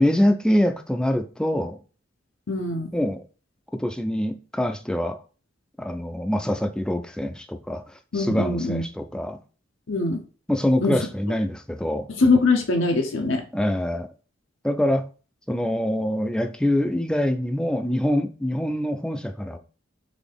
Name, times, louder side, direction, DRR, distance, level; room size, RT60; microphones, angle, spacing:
voice 1, 0.0-1.8 2.9-3.2 3.7-5.2 5.8-9.4 10.5-12.1 13.5-14.1 14.6-15.1 15.5-19.6, left 1 dB, 5° left, 0.4 m, -24 dB
voice 2, 2.5-2.9 8.1-8.8 9.9-10.2 10.8-11.0 12.2-13.4, left 3 dB, 85° left, 0.8 m, -22 dB
4.0 x 3.3 x 3.4 m
head